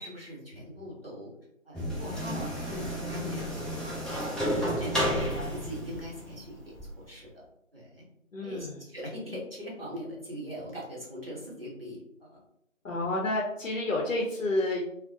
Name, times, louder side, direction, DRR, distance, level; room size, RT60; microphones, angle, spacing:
voice 1, 0.0-1.3 1.7-3.4 3.8-4.0 4.5-6.6 7.1-7.3 7.7-8.0 8.4-8.7 8.9-12.4, equal, 45° right, -4 dB, 0.8 m, -41 dB
sound 1, 1.7-6.9, equal, ahead, 0.4 m, -32 dB
voice 2, 5.0-5.5 8.3-8.9 12.8-14.8, left 2 dB, 80° left, -2 dB, 0.6 m, -30 dB
2.4 x 2.0 x 2.6 m, 0.77 s
figure-of-eight pair, 180°, 39 cm